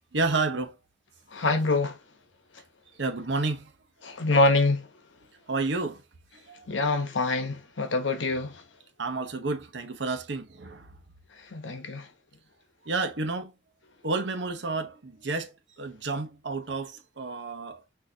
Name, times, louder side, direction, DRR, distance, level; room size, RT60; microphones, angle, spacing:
voice 1, 0.1-0.8 3.0-3.7 5.5-6.0 6.5-7.0 9.0-11.0 12.8-13.5 14.0-17.8, right 3 dB, 70° right, 0.9 m, -31 dB
voice 2, 1.3-2.0 4.0-4.9 6.7-8.6 11.5-12.1, left 3 dB, 80° left, 1.0 m, -25 dB
6.5 x 2.8 x 2.8 m
head